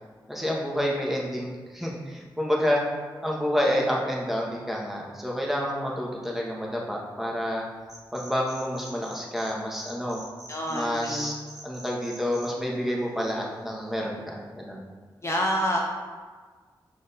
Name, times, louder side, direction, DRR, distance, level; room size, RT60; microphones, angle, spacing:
voice 1, 0.3-2.8 3.2-7.6 8.1-10.2 10.7-11.3 11.6-14.9, equal, 5° right, -3 dB, 1.1 m, -29 dB
sound 1, 7.8-9.5 9.8-12.5, right 1 dB, 40° right, 1.0 m, -45 dB
voice 2, 10.5-11.4 15.2-15.8, equal, 30° left, -1 dB, 0.6 m, -27 dB
5.0 x 2.6 x 4.0 m, 1.5 s
cardioid pair, 45°, 9 cm